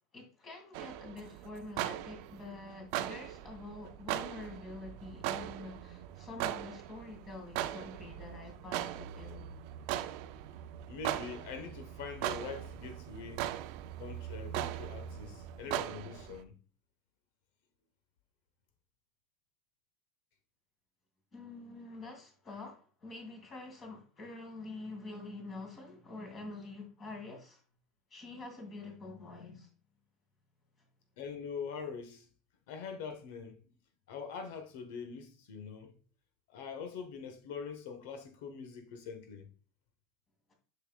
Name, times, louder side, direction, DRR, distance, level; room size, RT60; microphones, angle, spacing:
voice 1, 0.1-9.6 21.3-27.6 28.1-29.7 40.5-40.6, left 2 dB, 25° left, 2.3 m, -46 dB
sound 1, 0.7-16.4, right 12 dB, 65° right, 0.5 m, -40 dB
voice 2, 10.9-13.5 14.0-16.5 31.2-32.3 32.7-33.6 34.1-36.0 36.5-39.5, left 5 dB, 75° left, 1.2 m, -43 dB
6.9 x 5.8 x 2.4 m
supercardioid pair, 150°, 0 cm